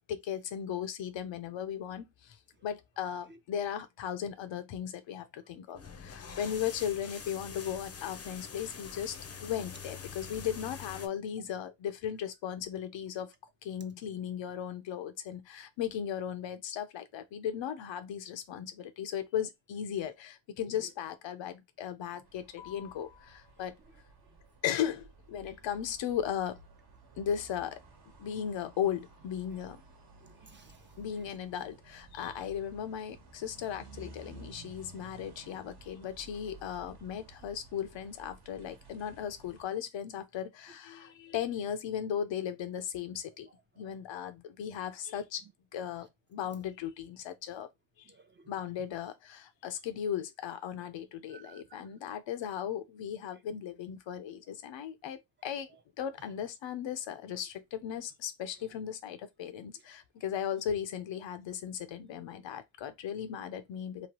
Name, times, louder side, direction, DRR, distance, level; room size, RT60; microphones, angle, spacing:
voice 1, 0.1-9.2 9.4-13.3 13.6-23.7 24.6-26.6 27.2-27.8 28.2-29.8 31.0-43.5 43.8-45.4 45.7-47.7 48.0-48.1 48.5-55.7 56.0-64.1, left 9 dB, 85° left, 0.6 m, -37 dB
sound 1, 5.7-11.1, left 6 dB, 35° left, 0.6 m, -45 dB
sound 2, 22.2-39.6, right 3 dB, 55° right, 1.1 m, -55 dB
voice 2, 30.2-30.9 41.0-41.1 48.1-48.5 51.3-51.8, right 4 dB, 25° right, 0.5 m, -57 dB
3.0 x 2.2 x 2.9 m
cardioid pair, 80°, 44 cm